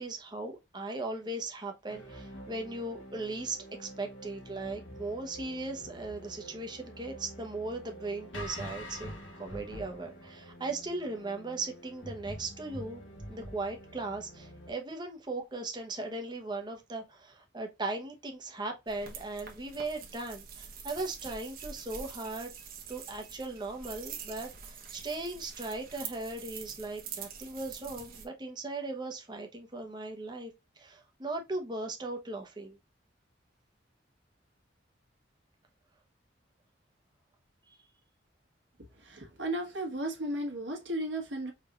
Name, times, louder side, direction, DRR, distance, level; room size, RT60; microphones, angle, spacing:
voice 1, 0.0-9.1 9.4-13.0 13.3-22.5 22.9-32.8, right 2 dB, 25° right, 0.9 m, -38 dB
sound 1, 1.9-14.7, equal, 85° left, 1.5 m, -46 dB
sound 2, 18.9-28.2, right 7 dB, 50° right, 1.0 m, -45 dB
voice 2, 38.9-41.5, right 1 dB, 75° right, 1.4 m, -35 dB
5.0 x 3.5 x 2.4 m
head